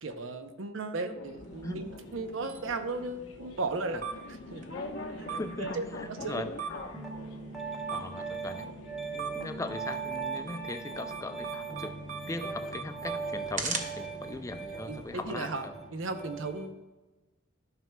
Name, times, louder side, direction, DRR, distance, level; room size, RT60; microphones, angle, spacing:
voice 1, 0.0-4.6 5.2-6.5 14.9-15.6 15.9-16.8, right 3 dB, 80° right, 8 dB, 0.7 m, -36 dB
sound 1, 1.1-16.6, left 2 dB, 85° left, 0.9 m, -46 dB
sound 2, 1.4-15.3, right 5 dB, 40° right, 0.7 m, -43 dB
voice 2, 5.3-6.5 7.9-8.7 9.1-11.9 12.3-15.8, left 2 dB, 15° left, 8 dB, 0.4 m, -39 dB
Piano, 6.9-16.6, right 4 dB, ahead, 0.8 m, -39 dB
12.5 x 5.9 x 2.2 m, 1.2 s
head